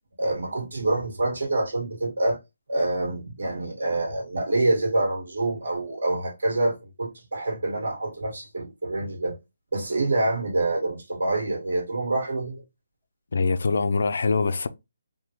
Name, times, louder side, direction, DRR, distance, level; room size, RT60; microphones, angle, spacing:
voice 1, 0.2-2.4 2.7-9.4 9.7-12.6, right 2 dB, 90° right, 1.7 m, -26 dB
voice 2, 13.3-14.7, left 4 dB, 65° left, 0.4 m, -23 dB
3.4 x 2.2 x 2.9 m
hypercardioid pair, 175°, 0 cm